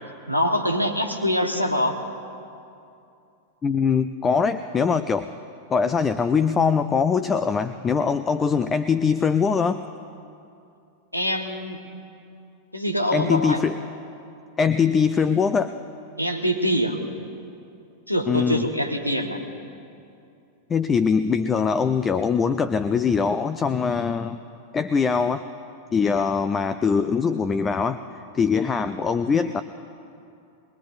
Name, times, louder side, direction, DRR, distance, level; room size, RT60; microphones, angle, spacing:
voice 1, 0.3-2.0 11.1-11.8 12.7-13.6 16.2-17.0 18.1-19.4, equal, 90° left, 2 dB, 1.3 m, -24 dB
voice 2, 3.6-5.3 5.7-9.8 13.1-13.8 14.6-15.8 18.3-18.7 20.7-24.4 24.7-25.4 25.9-29.6, left 5 dB, 20° left, 12 dB, 0.5 m, -22 dB
23.0 x 20.5 x 2.6 m, 2.6 s
figure-of-eight pair, 90°, 0 cm